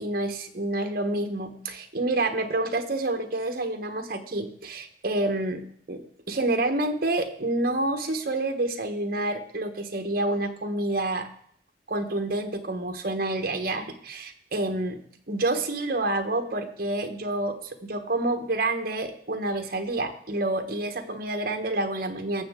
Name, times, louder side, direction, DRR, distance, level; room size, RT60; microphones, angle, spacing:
voice 1, 0.0-11.3 11.9-15.0 15.3-22.4, right 2 dB, 55° right, 6 dB, 1.2 m, -28 dB
19.0 x 7.2 x 3.7 m, 0.65 s
head